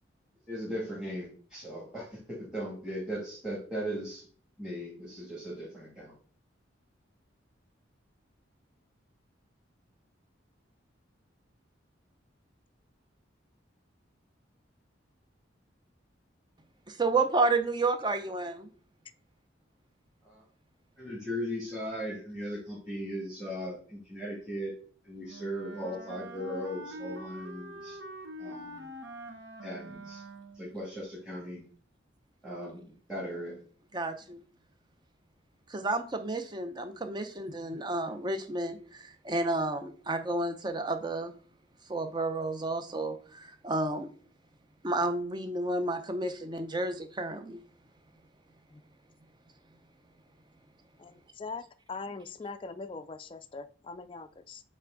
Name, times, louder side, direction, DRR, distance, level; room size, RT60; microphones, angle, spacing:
voice 1, 0.5-4.3 4.6-6.1 20.2-20.4 21.0-24.7 25.0-28.0 28.4-28.9 29.6-30.2 30.5-31.6 32.4-33.6, equal, 5° right, -7 dB, 2.2 m, -38 dB
voice 2, 16.9-18.7 33.9-34.4 35.7-41.3 41.9-44.1 44.8-47.6, right 2 dB, 20° right, 8 dB, 0.6 m, -31 dB
Wind instrument woodwind instrument, 25.3-30.7, equal, 65° right, 1.0 m, -44 dB
voice 3, 51.0-54.6, left 4 dB, 25° left, 10 dB, 0.3 m, -42 dB
8.1 x 3.3 x 3.8 m, 0.44 s
head